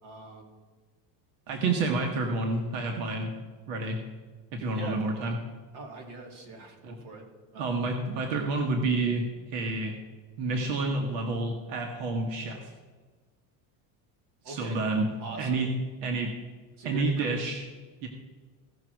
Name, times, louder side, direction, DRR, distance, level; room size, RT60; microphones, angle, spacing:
voice 1, 0.0-0.5 4.7-5.1 5.7-7.2 7.5-7.7 14.4-14.8 15.2-15.6 16.8-17.4, right 2 dB, 55° right, 1 dB, 2.8 m, -42 dB
voice 2, 1.5-3.3 3.7-4.0 4.5-5.4 6.8-6.9 7.6-9.9 10.4-12.7 14.4-15.1 15.4-15.7 16.0-16.3 16.8-17.6 18.0-18.1, right 3 dB, 90° right, 2 dB, 1.6 m, -29 dB
17.0 x 6.3 x 4.7 m, 1.4 s
cardioid pair, 140°, 49 cm